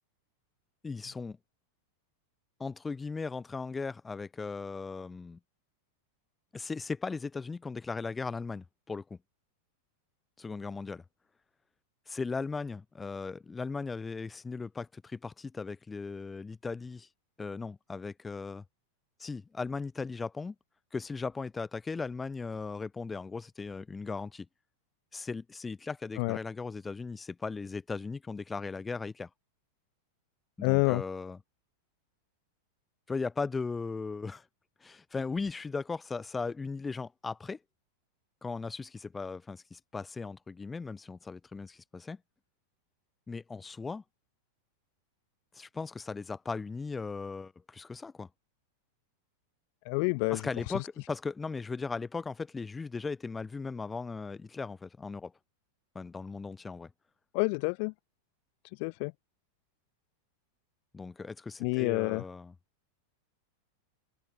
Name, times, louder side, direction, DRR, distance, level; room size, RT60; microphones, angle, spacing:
voice 1, 0.8-1.4 2.6-5.4 6.5-9.2 10.4-11.0 12.1-17.1 17.4-18.6 19.2-20.5 20.9-24.5 25.1-29.3 30.6-31.4 33.1-34.4 34.8-37.6 38.4-42.2 43.3-44.0 45.5-48.3 50.3-55.3 55.9-56.9 60.9-62.5, left 4 dB, 15° left, 2.7 m, -37 dB
voice 2, 30.6-31.0 49.9-50.5 57.3-57.9 58.8-59.1 61.6-62.2, left 40 dB or more, 45° left, 1.9 m, -28 dB
figure-of-eight pair, 90°, 0 cm